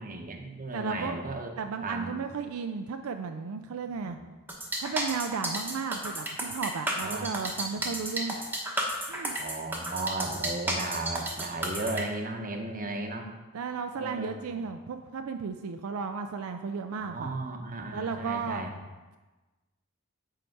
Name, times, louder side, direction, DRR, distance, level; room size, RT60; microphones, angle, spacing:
voice 1, 0.0-1.5 1.8-2.2 3.9-4.3 7.0-7.9 9.4-13.3 14.0-14.6 17.0-18.7, right 2 dB, 40° right, 4 dB, 0.8 m, -36 dB
voice 2, 0.7-1.2 1.6-4.2 4.8-8.4 9.1-9.3 13.5-17.3 17.9-18.6, right 5 dB, 75° right, 7 dB, 0.4 m, -34 dB
sound 1, 4.5-12.0, right 1 dB, 10° right, 1.0 m, -32 dB
7.7 x 4.8 x 4.6 m, 1.2 s
head